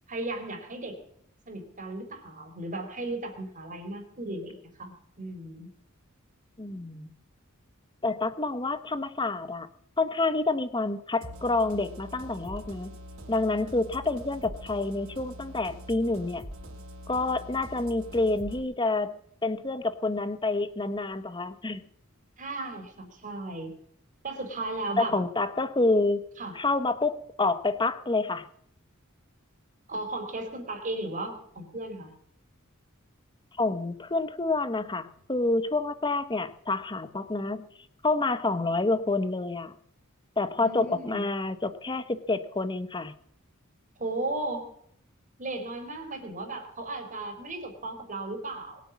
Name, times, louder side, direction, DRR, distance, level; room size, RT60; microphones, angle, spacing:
voice 1, 0.1-1.0 1.5-5.7 22.4-23.7 24.2-25.1 26.4-26.6 29.9-32.1 40.6-41.2 44.0-44.7 45.4-48.8, right 2 dB, 40° right, 4 dB, 4.0 m, -35 dB
voice 2, 6.6-7.1 8.0-9.7 10.0-13.0 13.3-16.4 17.1-19.2 19.4-21.8 25.0-26.2 26.5-28.5 33.6-37.7 38.0-39.7 40.4-43.1, left 3 dB, 20° left, 12 dB, 1.0 m, -28 dB
sound 1, 11.2-18.6, equal, 65° right, 4.6 m, -44 dB
22.0 x 8.5 x 7.3 m, 0.69 s
head